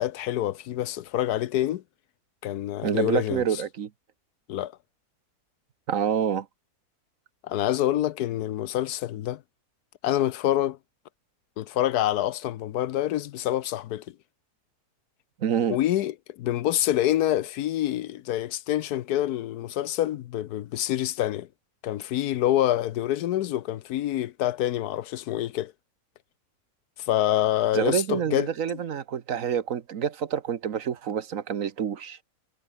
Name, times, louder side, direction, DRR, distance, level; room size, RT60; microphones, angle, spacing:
voice 1, 0.0-1.8 2.4-3.4 4.5-4.7 7.4-9.4 10.0-10.8 11.6-14.0 15.7-21.5 21.8-25.7 27.0-28.5, left 13 dB, 80° left, 1.2 m, -26 dB
voice 2, 2.8-3.9 5.9-6.5 15.4-15.8 27.7-32.2, right 8 dB, 60° right, 1.4 m, -27 dB
omnidirectional pair, 1.7 m